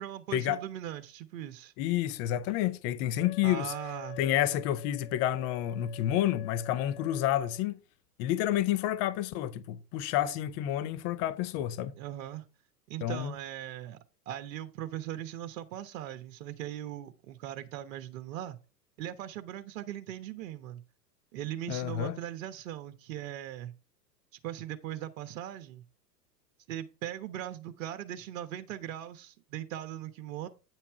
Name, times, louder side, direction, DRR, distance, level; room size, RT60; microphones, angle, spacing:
voice 1, 0.0-1.7 3.4-4.2 12.0-12.4 12.9-14.0 14.3-18.6 19.0-20.8 21.3-23.7 24.4-25.8 26.7-30.5, right 12 dB, 55° right, 1.2 m, -39 dB
voice 2, 1.8-3.7 4.2-7.7 8.2-11.9 13.0-13.3 21.7-22.2, left 12 dB, 30° left, 0.6 m, -29 dB
Wind instrument woodwind instrument, 3.2-7.6, left 12 dB, 50° left, 1.0 m, -47 dB
9.2 x 5.8 x 4.7 m
figure-of-eight pair, 95°, 49 cm